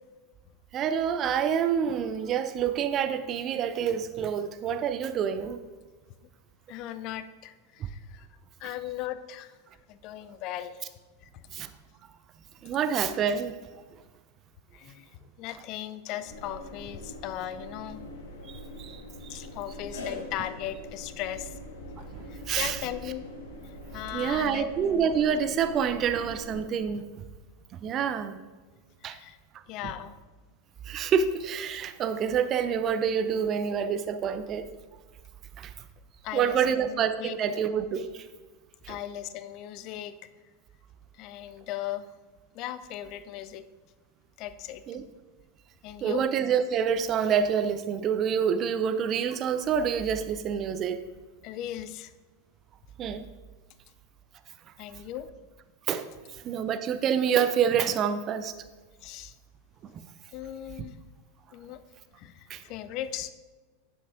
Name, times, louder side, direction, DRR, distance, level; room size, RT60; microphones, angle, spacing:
voice 1, 0.7-5.6 11.5-11.7 12.6-13.5 18.5-19.0 22.0-22.1 22.5-22.8 24.1-27.0 27.8-28.4 29.0-29.2 30.9-34.7 35.6-35.7 36.3-38.1 38.8-39.0 44.9-45.0 46.0-51.0 53.0-53.2 55.9-56.1 56.4-58.5 62.5-62.6, right 7 dB, 35° right, 10 dB, 0.7 m, -27 dB
voice 2, 6.7-8.3 8.6-9.6 9.9-10.8 11.2-11.3 14.7-18.0 19.3-21.6 22.3-23.3 23.9-24.7 29.0-29.4 29.7-30.2 36.2-37.4 38.9-40.2 41.1-42.1 42.5-43.6 44.4-44.8 45.8-46.3 51.4-52.1 54.8-55.3 59.0-59.3 60.3-61.0 61.5-61.8 62.2-63.3, left 12 dB, 45° left, 13 dB, 0.6 m, -37 dB
sound 1, 16.2-26.6, left 1 dB, 70° left, 1.9 m, -43 dB
10.5 x 7.1 x 3.8 m, 1.3 s
figure-of-eight pair, 85°, 0 cm